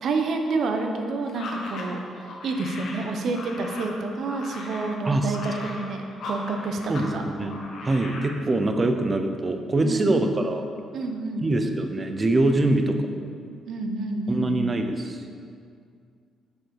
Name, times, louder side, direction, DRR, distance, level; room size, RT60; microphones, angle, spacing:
voice 1, 0.0-7.2 9.8-10.2 10.9-11.5 12.6-12.9 13.6-14.5, right 3 dB, 60° right, 4 dB, 0.9 m, -29 dB
sound 1, 1.3-7.1 7.4-8.3, left 2 dB, 65° left, 1.4 m, -38 dB
voice 2, 5.0-5.4 6.9-7.1 7.4-7.6 7.8-10.6 11.4-13.0 14.3-15.3, right 2 dB, 30° right, 6 dB, 0.7 m, -23 dB
7.7 x 5.4 x 4.8 m, 2.2 s
cardioid pair, 90°, 0 cm